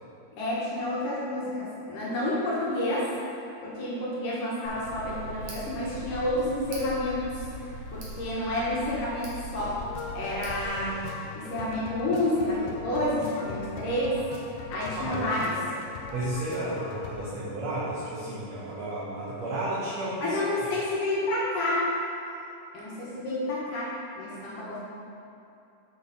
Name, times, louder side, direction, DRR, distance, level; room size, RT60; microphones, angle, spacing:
voice 1, 0.3-3.1 3.6-9.8 10.1-11.0 11.4-14.2 14.7-15.6 20.2-21.9 22.7-24.8, left 1 dB, 65° left, -7 dB, 2.7 m, -29 dB
Tick, 4.6-10.7, equal, 55° right, 2.2 m, -41 dB
sound 1, 9.6-17.3, left 4 dB, 90° left, 2.6 m, -40 dB
voice 2, 14.9-15.3 16.1-20.7, right 1 dB, 75° right, -7 dB, 1.5 m, -33 dB
6.7 x 6.2 x 4.1 m, 2.7 s
omnidirectional pair, 4.4 m